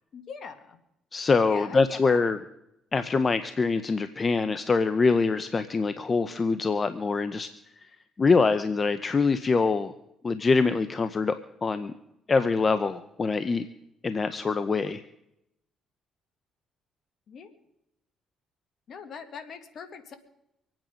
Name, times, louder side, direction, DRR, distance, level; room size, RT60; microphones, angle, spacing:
voice 1, 0.1-0.8 1.4-2.2 17.3-17.5 18.9-20.2, left 6 dB, 60° left, 9 dB, 2.0 m, -42 dB
voice 2, 1.1-2.4 2.9-7.5 7.8-7.9 8.2-9.9 10.2-11.9 12.3-13.7 14.0-15.0, left 4 dB, 35° left, 12 dB, 0.8 m, -24 dB
25.0 x 9.1 x 5.2 m, 0.84 s
supercardioid pair, 65°, 0 cm